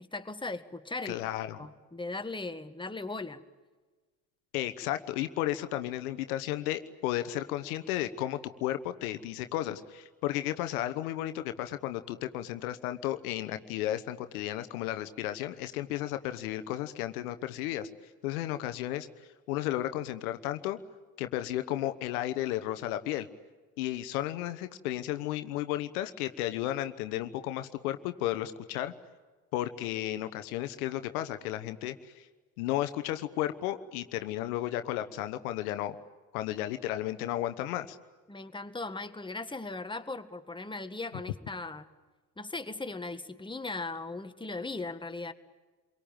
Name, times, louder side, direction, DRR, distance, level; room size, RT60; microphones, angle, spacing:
voice 1, 0.0-1.2 1.6-3.4 38.3-41.9 42.4-45.3, left 3 dB, 10° left, 8 dB, 1.8 m, -38 dB
voice 2, 1.0-1.6 4.5-19.1 19.5-20.8 21.2-23.3 23.8-28.9 29.5-32.3 32.6-36.0 36.3-38.0, left 13 dB, 75° left, 10 dB, 1.2 m, -33 dB
28.0 x 23.0 x 9.0 m, 1.3 s
hypercardioid pair, 55°, 45 cm